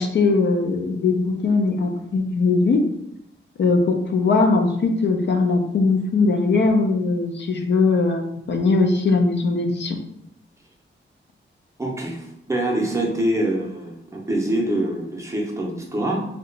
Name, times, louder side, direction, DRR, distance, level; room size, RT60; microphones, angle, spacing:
voice 1, 0.0-2.8 3.6-8.2 8.5-10.0, left 3 dB, 60° left, 4 dB, 0.4 m, -20 dB
voice 2, 11.8-16.2, right 1 dB, 15° right, -2 dB, 0.6 m, -25 dB
2.7 x 2.2 x 3.8 m, 0.79 s
wide cardioid pair, 160°, 21 cm